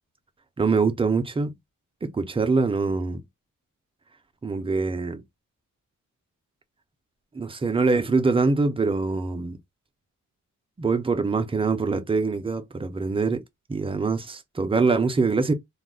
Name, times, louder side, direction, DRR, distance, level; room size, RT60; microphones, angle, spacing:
voice 1, 0.6-1.5 2.0-3.2 4.4-5.2 7.3-9.6 10.8-13.4 13.7-15.5, right 4 dB, 20° right, 0.3 m, -24 dB
2.3 x 2.0 x 3.5 m
wide cardioid pair, 160°, 32 cm